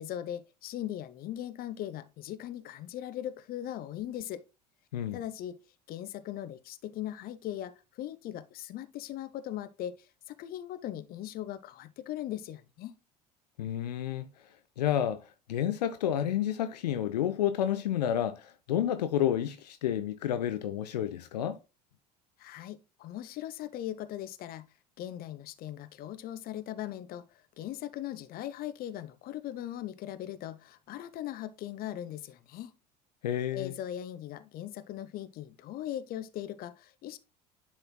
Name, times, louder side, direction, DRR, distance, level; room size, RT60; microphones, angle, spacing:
voice 1, 0.0-4.4 5.1-5.6 5.9-12.9 22.4-24.7 25.0-32.7 33.5-37.2, left 12 dB, 45° left, 0.8 m, -39 dB
voice 2, 13.6-14.3 14.8-21.6 33.2-33.7, left 10 dB, 75° left, 0.5 m, -30 dB
10.5 x 4.5 x 2.3 m
figure-of-eight pair, 65°, 21 cm